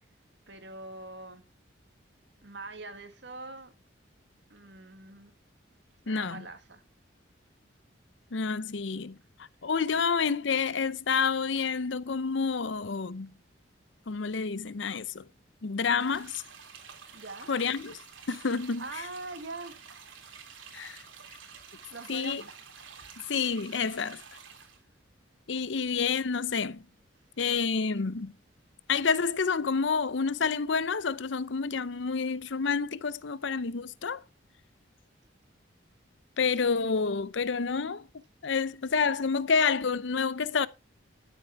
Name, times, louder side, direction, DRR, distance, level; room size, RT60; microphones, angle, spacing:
voice 1, 0.5-1.4 2.4-3.7 4.5-5.3 6.1-6.8 17.1-17.5 18.8-19.8 21.9-22.5, right 3 dB, 65° right, 2.0 m, -43 dB
voice 2, 6.1-6.4 8.3-13.3 14.1-15.3 15.6-16.4 17.5-18.0 18.3-18.8 20.7-21.0 22.1-22.4 23.3-24.2 25.5-26.8 27.4-28.3 28.9-34.2 36.4-38.1 38.4-40.7, left 5 dB, 70° left, 0.7 m, -29 dB
sound 1, 16.0-24.8, right 6 dB, 85° right, 3.0 m, -49 dB
13.0 x 8.0 x 4.6 m
head